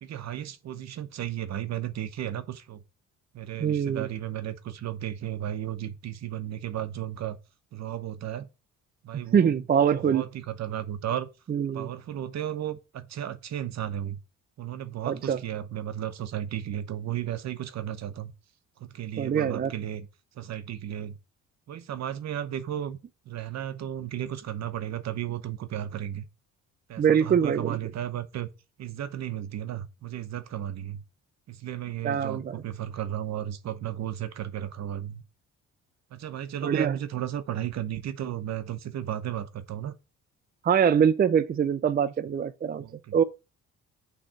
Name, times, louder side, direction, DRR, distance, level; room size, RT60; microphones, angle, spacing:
voice 1, 0.0-2.8 3.3-7.4 7.7-8.5 9.0-9.7 9.9-11.3 11.7-14.2 14.6-18.3 18.8-20.1 20.4-21.2 21.7-26.2 26.9-28.5 28.8-31.0 31.5-35.2 36.1-40.0 42.8-43.1, right 11 dB, 60° right, 0.8 m, -34 dB
voice 2, 3.6-4.1 9.3-10.2 11.5-11.9 15.1-15.4 19.2-19.7 27.0-27.8 32.0-32.6 36.6-37.0 40.6-42.8 43.1-43.2, right 8 dB, 30° right, 0.5 m, -23 dB
6.3 x 3.3 x 5.7 m
cardioid pair, 90°, 30 cm